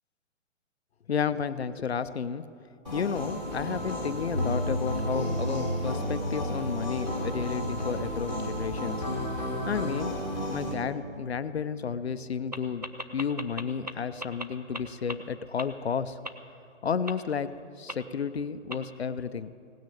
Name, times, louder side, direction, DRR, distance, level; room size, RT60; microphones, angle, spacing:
voice 1, 1.1-2.4 2.9-9.0 9.7-10.2 10.5-12.8 13.1-16.2 16.8-17.5 17.8-19.5, left 6 dB, 55° left, 13 dB, 0.6 m, -32 dB
sound 1, 2.8-10.7, left 1 dB, 5° right, 1.0 m, -33 dB
sound 2, 4.3-14.6, equal, 70° right, 1.8 m, -37 dB
sound 3, 12.5-12.6 12.8-13.9 14.2-14.4 14.7-14.8 15.1-15.2 15.6-15.7 16.2-16.3 17.1-17.2 17.9-18.0 18.7-18.8, right 1 dB, 35° right, 0.4 m, -34 dB
17.0 x 6.5 x 8.4 m, 2.4 s
hypercardioid pair, 180°, 38 cm